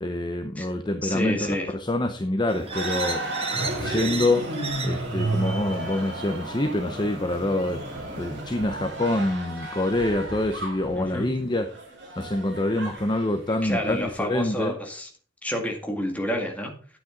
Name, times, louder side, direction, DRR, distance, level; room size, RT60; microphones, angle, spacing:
voice 1, 0.0-3.2 3.8-4.4 4.8-11.7 12.2-14.8, left 1 dB, 25° left, 7 dB, 0.8 m, -26 dB
voice 2, 1.0-1.7 11.0-11.3 13.6-15.1 15.4-17.0, equal, 10° left, 2 dB, 2.1 m, -29 dB
sound 1, 2.5-9.2, right 3 dB, 30° right, 1.6 m, -36 dB
sound 2, 2.7-14.3, right 2 dB, 65° right, 5.0 m, -33 dB
10.5 x 8.8 x 3.9 m, 0.43 s
head